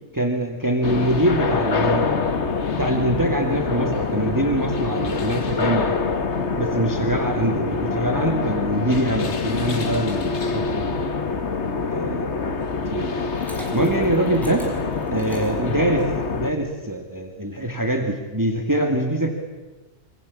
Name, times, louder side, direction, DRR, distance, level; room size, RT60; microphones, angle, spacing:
voice 1, 0.1-2.1 2.8-6.0 6.6-11.0 11.9-12.3 12.9-13.1 13.7-14.7 15.1-19.3, right 1 dB, 15° right, 4 dB, 2.5 m, -24 dB
sound 1, 0.8-16.5, left 4 dB, 60° left, 1.9 m, -25 dB
Liquid, 13.2-16.2, equal, ahead, 6.5 m, -41 dB
27.0 x 24.5 x 8.6 m, 1.1 s
omnidirectional pair, 1.3 m